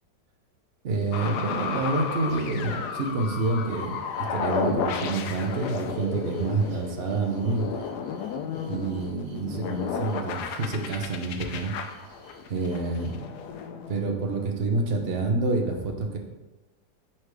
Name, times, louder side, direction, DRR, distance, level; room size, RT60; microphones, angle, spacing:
voice 1, 0.8-4.0 4.3-7.7 8.6-11.7 12.5-13.4 13.9-16.2, right 3 dB, 50° right, 3 dB, 0.8 m, -28 dB
sound 1, 0.9-13.1, right 3 dB, 70° right, 1.6 m, -54 dB
sound 2, 1.1-14.6, left 6 dB, 75° left, 1.1 m, -33 dB
4.7 x 4.4 x 4.8 m, 1.1 s
omnidirectional pair, 1.8 m